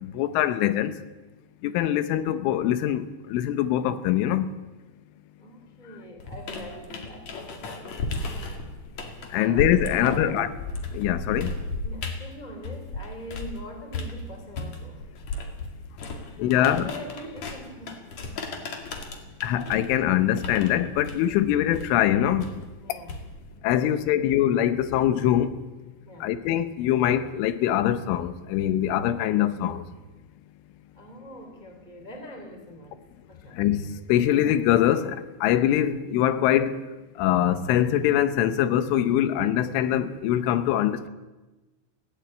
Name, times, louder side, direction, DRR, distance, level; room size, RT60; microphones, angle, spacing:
voice 1, 0.0-0.9 1.6-4.5 9.3-10.5 10.9-11.6 16.4-16.9 19.4-22.5 23.6-25.5 26.2-29.8 33.6-33.8 34.1-36.8 37.2-41.1, left 11 dB, 85° left, 3.4 m, -23 dB
voice 2, 5.4-7.9 9.4-10.4 11.8-15.0 16.2-18.3 22.8-23.3 23.8-24.2 26.1-26.3 30.9-33.0 33.3-33.6, equal, 25° right, 0.9 m, -42 dB
sound 1, 6.2-13.6 13.9-23.5, left 3 dB, 45° left, 2.6 m, -35 dB
18.0 x 16.5 x 8.7 m
omnidirectional pair, 5.6 m